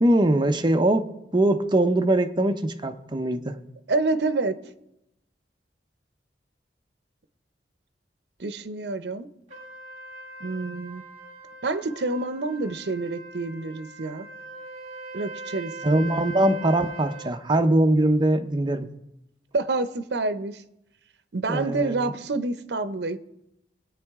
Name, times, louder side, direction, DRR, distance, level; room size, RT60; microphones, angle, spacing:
voice 1, 0.0-1.1 1.3-3.6 15.8-18.9 21.5-22.1, right 1 dB, 25° right, 6 dB, 0.7 m, -22 dB
voice 2, 3.9-4.6 8.4-9.3 10.4-11.0 11.6-14.3 15.1-16.3 19.5-20.6 21.3-23.3, right 3 dB, 70° right, 12 dB, 0.7 m, -28 dB
Trumpet, 9.5-17.3, right 2 dB, 40° right, 3.1 m, -41 dB
20.0 x 8.9 x 3.6 m, 0.87 s
head